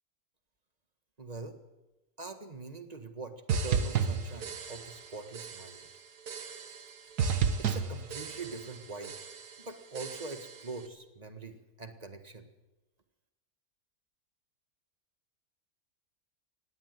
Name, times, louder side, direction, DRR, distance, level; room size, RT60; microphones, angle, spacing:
voice 1, 1.2-1.6 2.2-5.9 7.2-7.3 7.6-9.2 9.6-12.5, right 3 dB, 25° right, 8 dB, 1.7 m, -43 dB
sound 1, 3.5-5.1 5.3-5.8 6.3-6.9 7.2-8.8 9.0-9.5 9.9-10.6, right 6 dB, 80° right, 1.8 m, -33 dB
19.0 x 16.0 x 9.6 m, 1.1 s
omnidirectional pair, 1.7 m